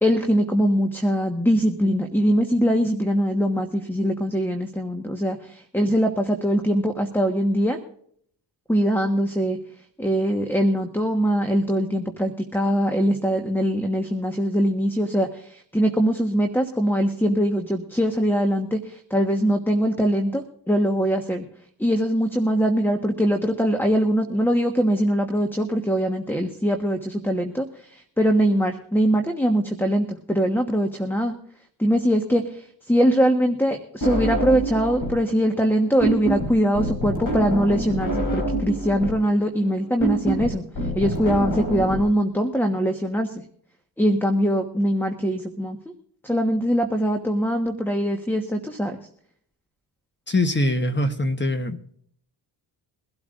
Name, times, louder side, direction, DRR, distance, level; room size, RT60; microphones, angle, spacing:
voice 1, 0.0-7.8 8.7-9.6 10.0-21.4 21.8-27.7 28.2-31.3 31.8-32.6 32.9-40.6 40.9-43.3 44.0-45.9 46.2-49.0, equal, 5° left, 1.3 m, -22 dB
sound 1, 34.0-35.3 35.5-42.0, right 1 dB, 50° left, 4.2 m, -26 dB
voice 2, 50.3-51.8, left 1 dB, 25° left, 1.1 m, -23 dB
23.0 x 12.0 x 2.5 m
cardioid pair, 90°, 43 cm